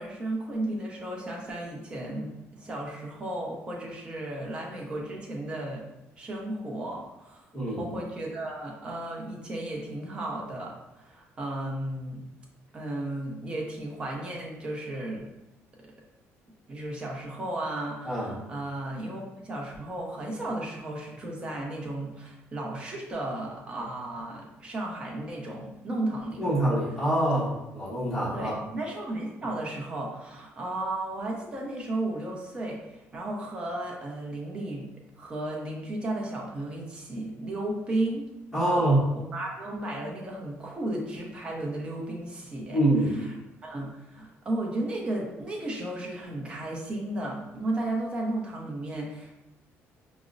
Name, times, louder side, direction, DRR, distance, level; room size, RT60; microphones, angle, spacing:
voice 1, 0.0-5.8 6.2-7.4 7.8-12.2 12.7-15.2 16.7-26.5 27.3-27.4 28.3-34.9 35.2-38.3 38.5-38.8 39.1-43.3 43.6-49.3, right 1 dB, 20° right, -2 dB, 0.6 m, -34 dB
voice 2, 7.5-7.8 18.0-18.3 26.4-28.5 38.5-39.0 42.7-43.1, right 1 dB, 5° left, -10 dB, 1.0 m, -25 dB
4.8 x 2.0 x 2.5 m, 0.93 s
cardioid pair, 175°, 5 cm